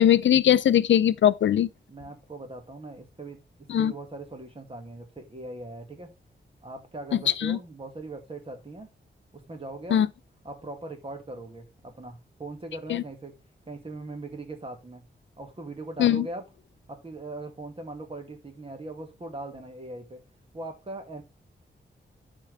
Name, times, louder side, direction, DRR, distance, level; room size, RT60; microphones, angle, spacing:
voice 1, 0.0-1.7 3.7-3.9 7.1-7.6 9.9-10.1 12.9-13.0 16.0-16.3, left 10 dB, 80° left, 0.4 m, -20 dB
voice 2, 1.9-3.4 3.8-6.1 6.6-8.9 9.5-10.0 10.4-13.3 13.7-15.0 15.4-16.4 16.9-20.2 20.5-21.2, right 2 dB, 30° right, 1.9 m, -40 dB
11.5 x 4.5 x 3.3 m
wide cardioid pair, 135°, 19 cm